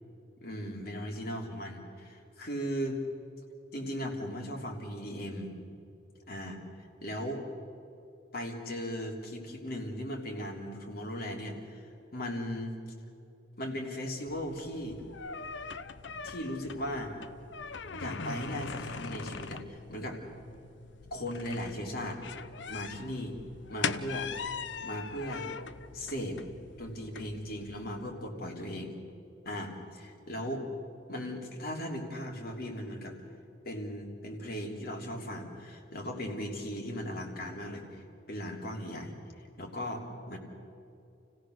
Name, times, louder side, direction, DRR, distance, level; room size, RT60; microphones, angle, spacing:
voice 1, 0.4-3.0 3.7-5.5 6.3-6.6 7.0-7.4 8.3-12.8 13.6-15.0 16.2-17.1 18.0-20.2 21.1-22.2 22.7-23.4 23.7-24.3 24.8-25.5 25.9-26.4 26.8-28.9 29.4-30.6 31.1-33.2 33.7-40.4, equal, 55° left, 1 dB, 3.3 m, -37 dB
sound 1, 14.3-28.1, left 5 dB, 70° left, 0.8 m, -41 dB
29.5 x 17.0 x 6.5 m, 2.7 s
head